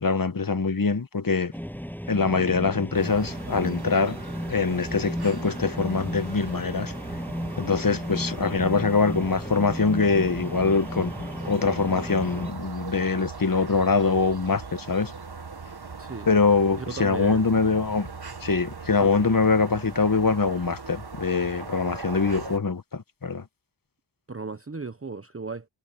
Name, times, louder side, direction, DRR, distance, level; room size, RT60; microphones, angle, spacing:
voice 1, 0.0-1.5 2.1-4.2 4.5-6.9 7.6-15.1 16.3-18.1 18.4-23.4, left 4 dB, 50° left, 1.1 m, -24 dB
sound 1, 1.5-12.5, equal, 5° left, 7.5 m, -34 dB
sound 2, 2.9-22.6, right 5 dB, 60° right, 1.5 m, -40 dB
voice 2, 16.7-17.6 19.0-19.3 24.3-25.7, right 4 dB, 30° right, 0.9 m, -36 dB
wide cardioid pair, 45°, 44 cm